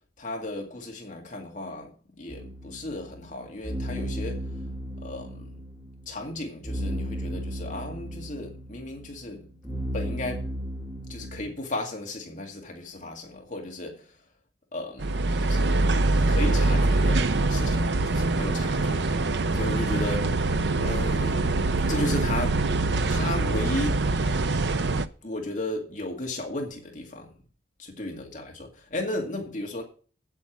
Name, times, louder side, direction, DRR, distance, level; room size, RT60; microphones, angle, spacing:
voice 1, 0.2-1.9 2.2-4.4 5.0-5.5 6.1-9.4 9.9-10.5 11.1-14.0 14.7-15.8 16.3-19.1 19.5-20.3 20.8-21.5 21.9-22.6 23.1-24.0 25.2-27.3 28.0-29.8, left 2 dB, 45° left, 2.1 m, -34 dB
sound 1, 2.3-11.4, equal, 5° right, 5.6 m, -35 dB
sound 2, 15.0-25.1, right 2 dB, 70° right, 0.6 m, -24 dB
8.6 x 8.2 x 6.0 m
head